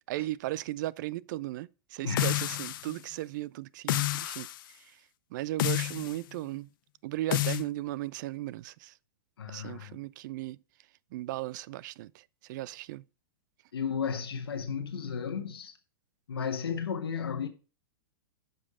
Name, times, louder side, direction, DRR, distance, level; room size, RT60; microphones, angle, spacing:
voice 1, 0.1-4.5 4.7-5.0 5.3-6.7 7.0-8.9 9.5-10.6 11.1-13.0, right 16 dB, 55° right, 0.4 m, -36 dB
voice 2, 2.0-2.5 9.4-10.0 13.7-15.8 16.3-17.5, left 6 dB, 90° left, 1.1 m, -34 dB
sound 1, 2.2-3.0 3.9-4.6 5.6-6.2 7.3-7.6, left 15 dB, 60° left, 0.6 m, -29 dB
9.6 x 5.5 x 4.9 m
hypercardioid pair, 135°, 12 cm